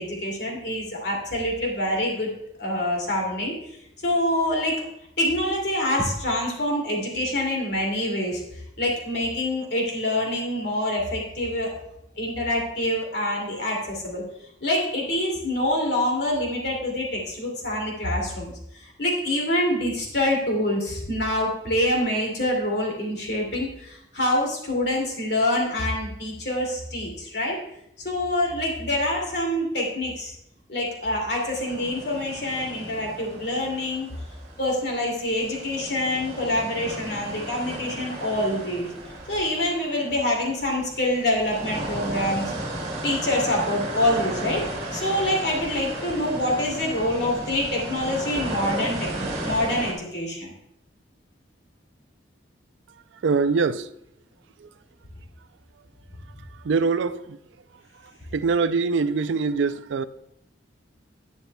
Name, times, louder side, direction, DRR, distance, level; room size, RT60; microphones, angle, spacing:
voice 1, 0.0-2.3 2.6-3.6 4.0-4.8 5.2-8.4 8.8-11.7 12.2-14.2 14.6-27.6 28.0-30.3 30.7-34.1 34.6-38.9 39.3-42.5 43.0-44.7 44.9-50.5, left 1 dB, 60° left, 2.5 m, -26 dB
sound 1, 31.5-35.0 35.3-49.9, right 1 dB, 35° right, 1.6 m, -34 dB
voice 2, 53.2-53.9 54.6-54.7 56.6-57.4 58.3-60.1, right 4 dB, 80° right, 0.4 m, -23 dB
11.5 x 9.4 x 2.3 m
head